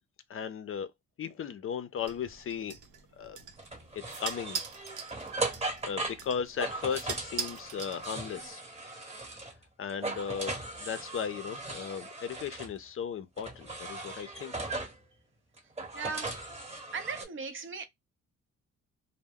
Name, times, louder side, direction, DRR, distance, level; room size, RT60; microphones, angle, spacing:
voice 1, 0.3-0.9 1.2-2.7 3.2-3.4 4.2-4.6 5.8-8.6 9.8-10.5 10.8-14.5, left 7 dB, 45° left, 0.5 m, -36 dB
sound 1, 2.1-8.5, right 7 dB, 85° right, 0.8 m, -42 dB
sound 2, 3.6-9.6 9.9-12.7 13.4-15.0 15.6-17.2, right 2 dB, 20° right, 1.1 m, -38 dB
voice 2, 15.9-16.3 16.9-17.9, right 5 dB, 40° right, 0.7 m, -37 dB
2.2 x 2.1 x 3.5 m
cardioid pair, 90°, 30 cm